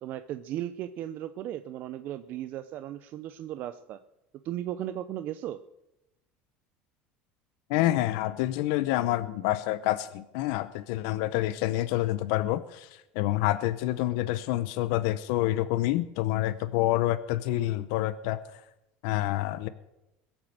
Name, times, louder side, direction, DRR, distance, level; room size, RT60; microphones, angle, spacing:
voice 1, 0.0-4.0 4.4-5.6, right 12 dB, 45° right, 11 dB, 0.6 m, -36 dB
voice 2, 7.7-18.6 19.0-19.7, left 15 dB, 75° left, 13 dB, 0.7 m, -28 dB
21.5 x 7.3 x 6.5 m, 0.91 s
cardioid pair, 150°, 4 cm